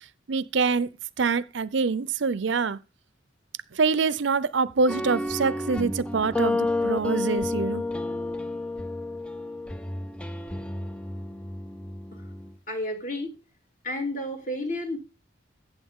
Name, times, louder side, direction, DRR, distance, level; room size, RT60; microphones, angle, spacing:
voice 1, 0.3-0.9 1.2-2.8 3.7-7.8, right 4 dB, 65° right, 0.6 m, -25 dB
sound 1, 4.9-12.5, left 2 dB, 5° left, 0.5 m, -30 dB
voice 2, 12.7-13.3 13.8-15.0, left 1 dB, 40° left, 2.7 m, -31 dB
14.0 x 8.5 x 3.7 m
head